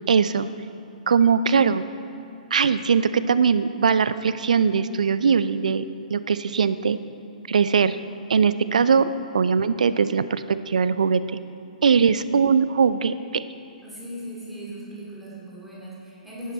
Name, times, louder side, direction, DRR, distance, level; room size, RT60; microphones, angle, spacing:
voice 1, 0.1-0.5 1.1-1.8 2.5-7.0 7.5-8.0 8.3-9.1 9.3-11.4 11.8-13.5, right 6 dB, 60° right, 14 dB, 0.5 m, -20 dB
voice 2, 13.8-16.5, equal, ahead, -9 dB, 3.7 m, -38 dB
15.0 x 11.0 x 4.3 m, 2.6 s
figure-of-eight pair, 120°, 4 cm